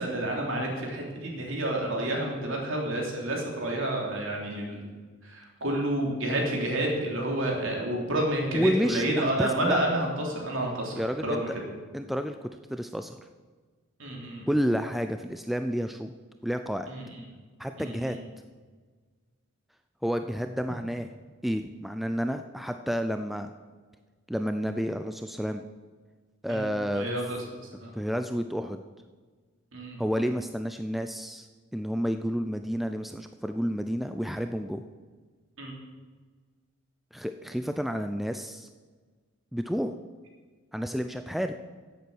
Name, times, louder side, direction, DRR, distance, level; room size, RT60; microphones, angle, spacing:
voice 1, 0.0-4.8 5.2-11.5 14.0-14.4 16.9-17.2 17.8-18.2 26.5-27.4 27.7-27.9 29.7-30.0 35.6-35.7, right 1 dB, 65° right, -1 dB, 3.1 m, -30 dB
voice 2, 8.5-9.8 11.0-11.6 11.9-13.2 14.5-16.1 16.4-16.9 17.6-18.2 20.0-21.1 21.4-23.5 24.3-25.6 26.4-27.1 27.9-28.8 30.0-31.5 31.7-34.8 37.1-38.7 39.5-40.0 40.7-41.6, equal, ahead, 7 dB, 0.3 m, -30 dB
10.5 x 8.3 x 7.7 m, 1.4 s
head